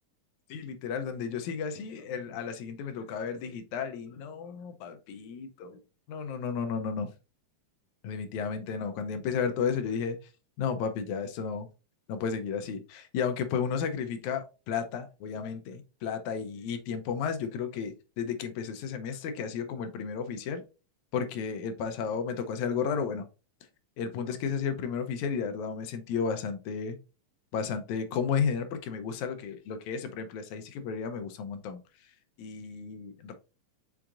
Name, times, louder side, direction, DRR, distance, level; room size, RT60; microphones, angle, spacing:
voice 1, 0.5-5.8 6.1-7.1 8.0-10.2 10.6-11.7 12.1-20.6 21.1-23.3 24.0-27.0 27.5-31.8 32.4-33.3, left 6 dB, 85° left, 2.1 m, -33 dB
5.9 x 3.8 x 2.4 m
omnidirectional pair, 3.4 m